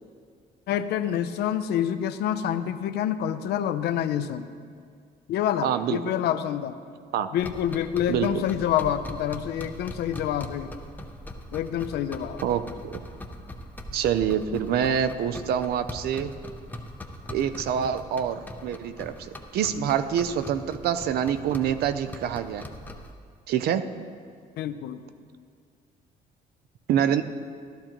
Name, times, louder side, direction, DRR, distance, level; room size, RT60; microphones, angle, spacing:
voice 1, 0.7-4.5 5.3-6.8 7.3-10.7 11.5-12.4 24.6-25.0, left 10 dB, 80° left, 10 dB, 0.5 m, -27 dB
voice 2, 5.6-6.0 7.1-7.3 8.1-8.4 12.4-13.0 13.9-16.3 17.3-22.6 23.5-23.8 26.9-27.2, right 9 dB, 70° right, 11 dB, 0.5 m, -26 dB
sound 1, 7.4-23.1, left 1 dB, 10° left, 0.6 m, -41 dB
14.0 x 12.0 x 3.0 m, 2.1 s
cardioid pair, 165°, 17 cm